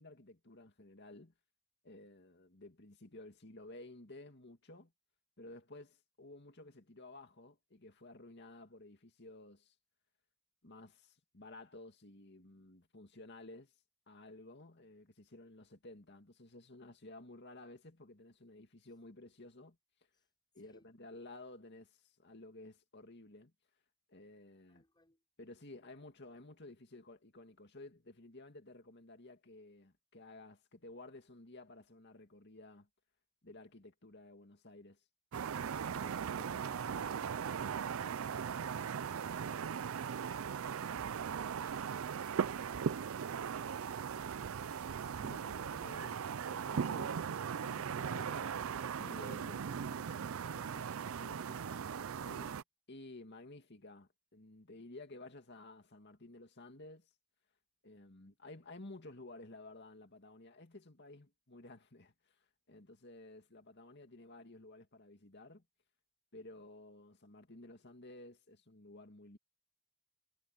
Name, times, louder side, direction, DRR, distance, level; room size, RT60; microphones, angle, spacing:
voice 1, 0.0-1.3 1.8-4.9 5.4-9.7 10.6-13.7 14.1-19.8 20.5-23.5 24.1-24.8 25.4-32.9 33.4-35.0 35.9-36.8 45.2-46.2 46.5-48.7 49.0-50.3 51.2-51.9 52.2-52.6 52.9-57.1 57.8-62.4 62.7-65.6 66.3-69.4, left 2 dB, 55° left, 2.4 m, -54 dB
voice 2, 20.6-20.9 24.7-25.2 36.0-39.1 39.5-41.0 41.4-44.2 45.4-46.3 48.1-48.7 50.3-51.0 51.5-52.2, left 2 dB, 20° left, 6.0 m, -67 dB
sound 1, 35.3-52.6, right 7 dB, 75° right, 0.4 m, -38 dB
head